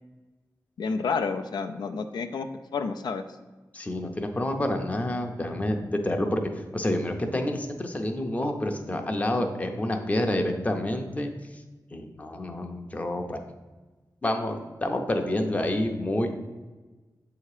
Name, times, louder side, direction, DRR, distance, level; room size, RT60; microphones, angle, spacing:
voice 1, 0.8-3.2, left 5 dB, 85° left, 6 dB, 0.4 m, -30 dB
voice 2, 3.7-5.8 6.0-6.4 6.7-11.3 11.9-13.4 14.2-16.5, left 1 dB, 20° left, 4 dB, 0.6 m, -28 dB
8.0 x 2.8 x 4.8 m, 1.2 s
wide cardioid pair, 150°, 7 cm